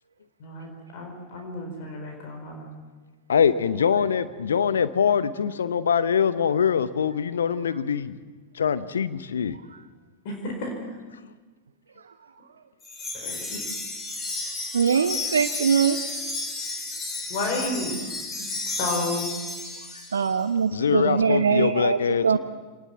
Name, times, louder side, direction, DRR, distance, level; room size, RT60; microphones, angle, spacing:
voice 1, 0.4-2.8 10.2-10.9 13.1-13.6 17.3-18.0 18.8-19.3 20.9-21.0, left 2 dB, 50° left, 2 dB, 4.9 m, -32 dB
voice 2, 3.3-8.1 8.5-9.6 20.7-22.4, left 7 dB, 70° left, 14 dB, 1.0 m, -23 dB
Wind chime, 12.8-20.3, left 3 dB, 25° left, 4.5 m, -32 dB
voice 3, 14.7-16.0 19.9-22.4, right 6 dB, 70° right, 8 dB, 0.8 m, -23 dB
25.5 x 19.5 x 7.3 m, 1.3 s
figure-of-eight pair, 90°, 0 cm